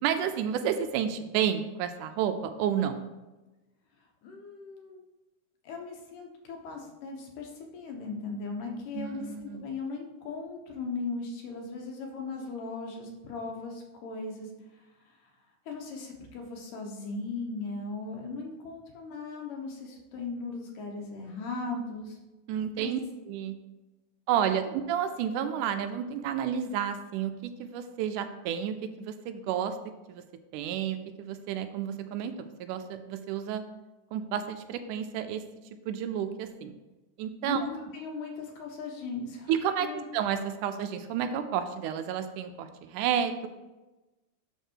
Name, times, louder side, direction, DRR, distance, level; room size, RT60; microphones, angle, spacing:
voice 1, 0.0-3.0 9.0-9.6 22.5-23.0 23.3-23.6 24.3-29.8 30.1-30.2 30.5-32.3 32.6-33.6 34.1-35.4 35.9-36.7 37.2-37.7 39.5-39.9 40.1-43.5, right 9 dB, 80° right, 8 dB, 2.0 m, -31 dB
voice 2, 4.2-5.0 5.6-15.1 15.7-22.2 22.8-22.9 37.5-39.5 39.8-40.0, left 4 dB, 80° left, 2 dB, 2.8 m, -38 dB
11.5 x 4.0 x 4.6 m, 1.1 s
omnidirectional pair, 3.7 m